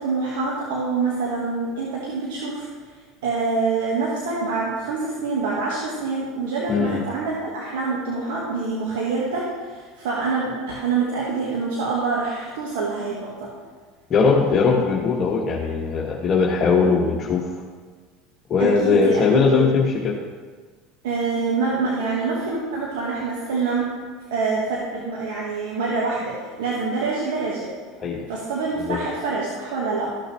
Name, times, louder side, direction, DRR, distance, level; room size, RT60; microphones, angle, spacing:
voice 1, 0.0-2.7 3.2-13.5 18.6-19.7 21.0-23.9 24.3-27.7 28.3-30.1, right 4 dB, 85° right, -4 dB, 1.6 m, -26 dB
voice 2, 6.7-7.0 14.1-17.4 18.5-20.2 28.0-28.2 28.9-29.0, left 5 dB, 40° left, -3 dB, 1.1 m, -19 dB
13.5 x 6.4 x 3.2 m, 1.5 s
supercardioid pair, 105°, 0 cm